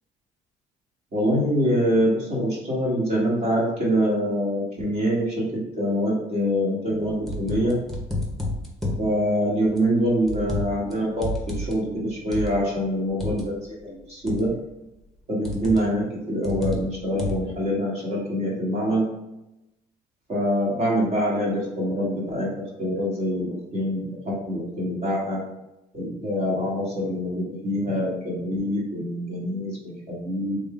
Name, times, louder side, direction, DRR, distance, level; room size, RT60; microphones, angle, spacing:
voice 1, 1.1-7.8 9.0-14.5 15.3-19.0 20.3-22.5 22.8-25.4 25.9-30.6, equal, 40° right, -5 dB, 1.5 m, -25 dB
sound 1, 6.9-9.1 9.8-10.9 11.2-13.5 14.3-14.7 15.4-15.9 16.4-17.5, left 1 dB, ahead, 0.9 m, -30 dB
3.4 x 2.5 x 3.7 m, 0.92 s
cardioid pair, 110°, 17 cm